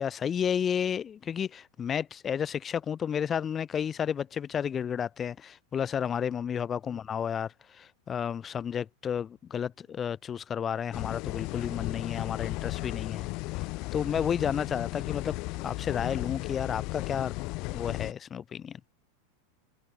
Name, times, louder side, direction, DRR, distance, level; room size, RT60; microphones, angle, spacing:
voice 1, 0.0-7.5 7.8-13.3 13.9-15.4 15.6-17.3 17.7-18.7, left 8 dB, 20° left, 2.1 m, -31 dB
sound 1, 10.9-18.1, left 25 dB, 45° left, 1.5 m, -35 dB
supercardioid pair, 150°, 0 cm